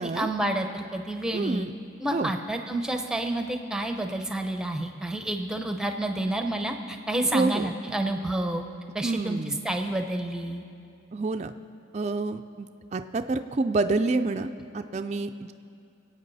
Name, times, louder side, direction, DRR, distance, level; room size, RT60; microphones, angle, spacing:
voice 1, 0.0-1.7 2.0-8.6 8.9-10.6, right 1 dB, 5° right, 5 dB, 0.7 m, -29 dB
voice 2, 1.3-1.7 2.1-2.3 7.3-7.7 9.0-9.6 11.1-11.5 11.9-14.5 14.7-15.5, right 3 dB, 35° right, 7 dB, 0.4 m, -28 dB
23.5 x 8.6 x 4.1 m, 2.5 s
head